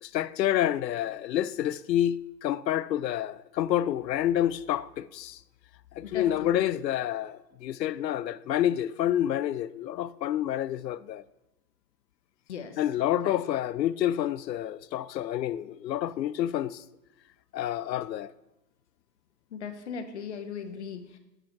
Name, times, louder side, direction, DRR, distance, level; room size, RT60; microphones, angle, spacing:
voice 1, 0.0-5.4 5.9-11.2 12.8-16.8 17.5-18.3, left 12 dB, 85° left, 0.6 m, -28 dB
voice 2, 6.0-6.5 12.5-12.8 13.2-13.4 19.5-21.2, left 6 dB, 45° left, 0.8 m, -38 dB
7.4 x 5.2 x 4.5 m
hypercardioid pair, 170°, 49 cm